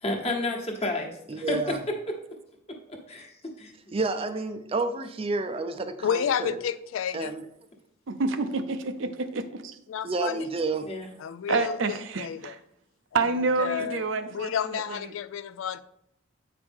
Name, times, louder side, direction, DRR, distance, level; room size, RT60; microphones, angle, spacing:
voice 1, 0.0-2.2 2.9-3.3 3.6-3.7 10.8-11.1, left 2 dB, 30° left, 1.2 m, -31 dB
voice 2, 1.3-1.8 3.9-6.6 7.1-7.4 10.0-10.9, right 3 dB, 30° right, 0.4 m, -30 dB
voice 3, 6.0-7.3 9.9-10.5 11.2-11.8 12.2-12.6 13.6-15.8, left 8 dB, 90° left, 0.3 m, -30 dB
voice 4, 8.1-9.8 11.5-12.6 13.1-15.1, right 3 dB, 75° right, 0.6 m, -28 dB
8.1 x 4.8 x 3.5 m
head